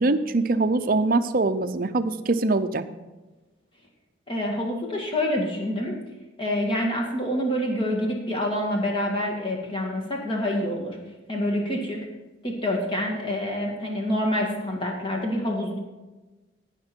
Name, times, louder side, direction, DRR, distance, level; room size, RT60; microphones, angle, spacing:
voice 1, 0.0-2.8, right 3 dB, 45° right, 9 dB, 0.6 m, -23 dB
voice 2, 4.3-6.0 6.4-11.0 11.3-12.0 12.4-15.8, left 1 dB, 25° left, 0 dB, 2.0 m, -27 dB
17.0 x 6.0 x 4.5 m, 1.2 s
head